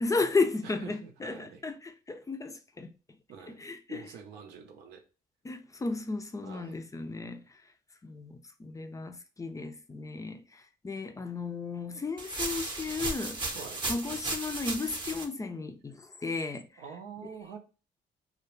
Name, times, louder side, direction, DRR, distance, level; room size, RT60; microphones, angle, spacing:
voice 1, 0.0-2.9 3.5-4.1 5.4-7.6 8.0-13.6 13.9-16.8, left 3 dB, 20° left, 0.4 m, -34 dB
voice 2, 0.6-1.6 3.3-3.6 3.9-5.0 6.4-6.8 13.5-13.8 16.8-17.6, right 6 dB, 90° right, 0.5 m, -46 dB
sound 1, 12.2-15.2, right 2 dB, 30° right, 0.7 m, -35 dB
2.2 x 2.0 x 2.9 m
supercardioid pair, 70°, 17 cm